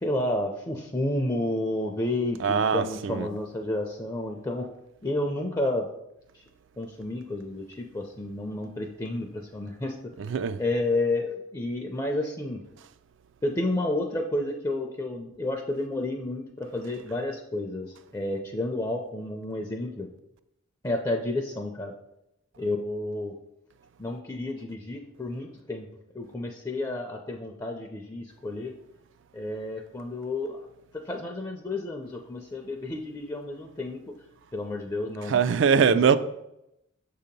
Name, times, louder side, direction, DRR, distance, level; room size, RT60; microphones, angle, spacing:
voice 1, 0.0-4.7 5.0-5.9 6.3-6.4 6.8-10.1 10.6-12.6 13.4-20.1 20.8-21.9 22.6-23.3 24.0-25.9 26.1-28.7 29.3-30.7 30.9-34.1 34.5-35.4 35.7-36.2, left 1 dB, 20° left, 0.4 m, -31 dB
voice 2, 2.4-3.3 10.2-10.6 35.3-36.2, right 6 dB, 65° right, 0.3 m, -22 dB
6.6 x 2.8 x 5.2 m
head